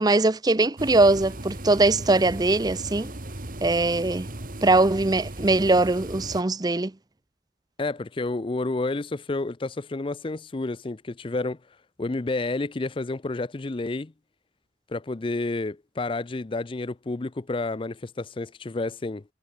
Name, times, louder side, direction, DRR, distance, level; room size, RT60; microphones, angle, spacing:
voice 1, 0.0-3.1 3.6-4.3 4.6-6.9, right 2 dB, 20° right, 0.6 m, -21 dB
sound 1, 0.8-6.4, right 1 dB, 45° right, 2.2 m, -37 dB
voice 2, 7.8-11.6 12.0-14.1 14.9-19.2, left 2 dB, 25° left, 0.5 m, -30 dB
head